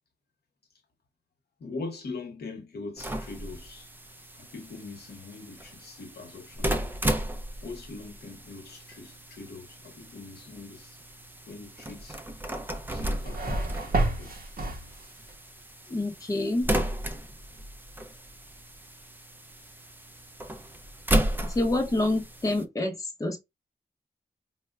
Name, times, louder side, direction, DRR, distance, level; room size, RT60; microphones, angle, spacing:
voice 1, 1.6-3.9 4.4-6.8 7.6-11.0 11.5-12.2 12.9-13.9 14.2-14.3, left 3 dB, 80° left, 0.9 m, -42 dB
sound 1, 3.0-22.6, right 1 dB, 10° right, 0.3 m, -34 dB
sound 2, 12.7-15.4, right 2 dB, 65° right, 0.9 m, -31 dB
voice 2, 15.9-16.7 21.4-23.4, left 2 dB, 20° left, 0.7 m, -27 dB
4.2 x 2.1 x 2.2 m
wide cardioid pair, 120°, 17 cm